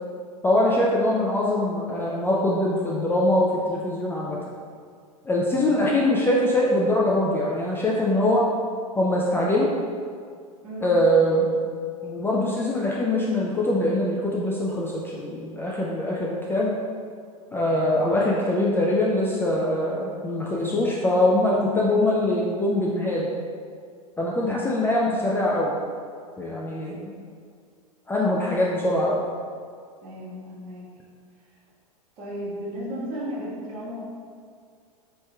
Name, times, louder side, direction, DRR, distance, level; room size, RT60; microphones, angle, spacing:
voice 1, 0.4-4.4 5.2-8.5 9.0-9.7 10.8-11.6 12.0-16.7 17.5-23.3 24.2-25.8 26.4-27.1 28.1-29.2, left 1 dB, 10° left, -4 dB, 0.4 m, -23 dB
voice 2, 30.0-30.8 32.2-33.9, equal, 50° right, -6 dB, 1.5 m, -34 dB
5.4 x 3.1 x 2.2 m, 2.1 s
hypercardioid pair, 100°, 20 cm